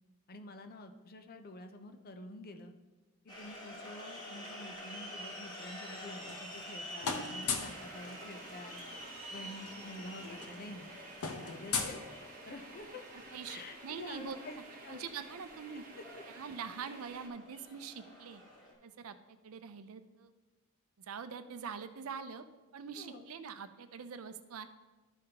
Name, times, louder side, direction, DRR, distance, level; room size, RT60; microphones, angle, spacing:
voice 1, 0.3-2.7 3.2-8.8 9.3-10.9 11.4-12.0 12.4-14.6 14.8-15.1 16.0-16.2 23.0-23.3, left 2 dB, 45° left, 7 dB, 0.6 m, -48 dB
sound 1, 3.3-18.7, equal, 20° left, 1.4 m, -48 dB
sound 2, 6.0-6.7 7.0-7.8 9.2-9.3 9.5-9.8 10.0-12.7, left 5 dB, 80° left, 0.8 m, -38 dB
sound 3, 7.6-17.3, right 2 dB, 40° right, 1.0 m, -53 dB
voice 2, 13.3-14.6 14.9-15.8 16.3-18.4 18.8-20.3 21.0-22.4 22.7-24.7, right 6 dB, 70° right, 10 dB, 0.5 m, -44 dB
12.5 x 5.2 x 2.9 m, 1.2 s
head